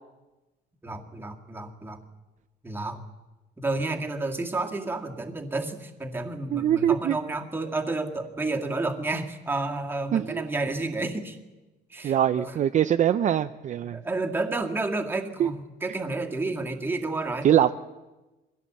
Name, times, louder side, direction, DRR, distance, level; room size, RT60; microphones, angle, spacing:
voice 1, 0.8-2.0 2.6-3.0 3.6-11.4 11.9-12.5 13.9-17.5, right 2 dB, 10° right, 3 dB, 2.0 m, -30 dB
voice 2, 6.5-7.2 10.1-10.4 12.0-14.0 15.4-15.5 17.4-17.7, right 10 dB, 45° right, 10 dB, 0.6 m, -23 dB
23.0 x 16.5 x 7.5 m, 1.1 s
cardioid pair, 140°, 18 cm